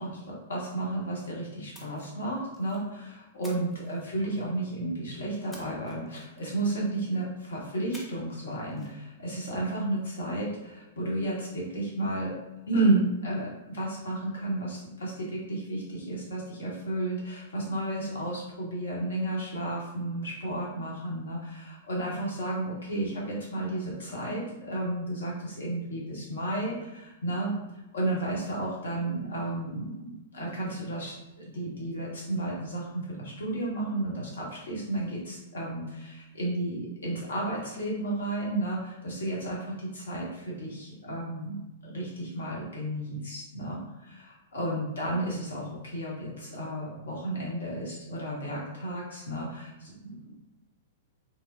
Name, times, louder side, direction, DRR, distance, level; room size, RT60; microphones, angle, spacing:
voice 1, 0.0-12.4 12.7-27.5 27.9-50.2, right 1 dB, 65° left, -4 dB, 0.9 m, -32 dB
Splash splatter, 1.7-2.9 3.4-4.6 5.5-6.8 7.9-8.4 8.7-8.9, left 1 dB, 5° left, 0.5 m, -51 dB
2.9 x 2.0 x 2.4 m, 0.99 s
figure-of-eight pair, 100°, 0 cm